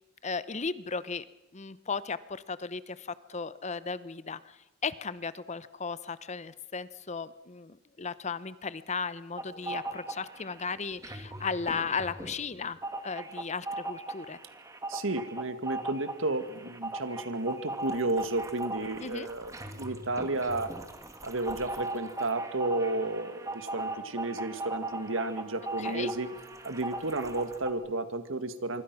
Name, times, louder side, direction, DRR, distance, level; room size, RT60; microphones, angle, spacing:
voice 1, 0.2-1.2 1.5-12.8 13.0-14.4 19.0-19.3 25.8-26.1, left 5 dB, 35° left, 16 dB, 0.8 m, -36 dB
sound 1, 9.4-10.6 10.9-27.7, right 2 dB, 15° right, 2.0 m, -38 dB
voice 2, 14.9-20.7 21.2-26.3 26.6-28.8, right 2 dB, 75° right, 10 dB, 1.9 m, -32 dB
25.5 x 24.0 x 6.1 m, 0.94 s
head